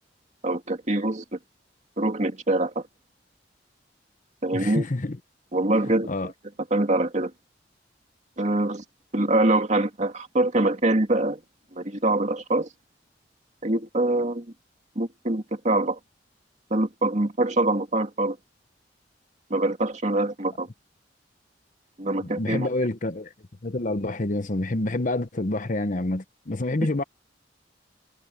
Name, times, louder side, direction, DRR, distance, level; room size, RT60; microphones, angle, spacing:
voice 1, 0.4-1.4 2.0-2.8 4.4-4.8 5.5-6.3 6.7-7.3 8.4-8.8 9.1-11.4 11.7-12.7 13.6-14.5 15.0-16.0 16.7-18.4 19.5-20.7 22.0-22.7, right 2 dB, 40° right, 2.2 m, -24 dB
voice 2, 4.5-5.2 6.1-6.3 22.2-23.3 23.6-27.0, left 2 dB, 45° left, 1.0 m, -27 dB
head